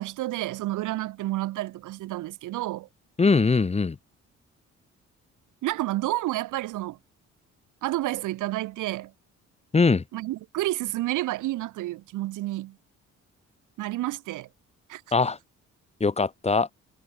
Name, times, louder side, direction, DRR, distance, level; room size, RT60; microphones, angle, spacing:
voice 1, 0.0-2.9 5.6-7.0 7.8-9.1 10.1-12.8 13.8-14.5 14.9-15.0, right 16 dB, 85° right, 1.2 m, -30 dB
voice 2, 3.2-4.0 9.7-10.0 15.1-15.4 16.0-16.7, left 4 dB, 20° left, 1.0 m, -21 dB
cardioid pair, 90°, 30 cm